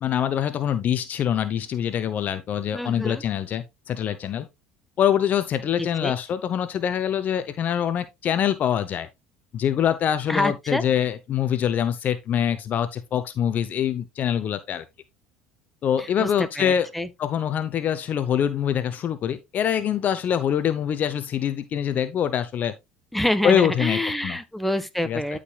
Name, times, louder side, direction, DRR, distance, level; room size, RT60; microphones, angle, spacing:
voice 1, 0.0-4.5 5.0-9.1 9.5-14.8 15.8-16.9 17.2-22.7 23.4-24.4 25.0-25.2, left 9 dB, 50° left, 0.8 m, -24 dB
voice 2, 2.7-3.2 5.8-6.2 10.3-10.8 16.0-17.1 23.1-25.4, left 1 dB, 5° left, 1.4 m, -27 dB
12.5 x 5.1 x 2.4 m
hypercardioid pair, 70°, 4 cm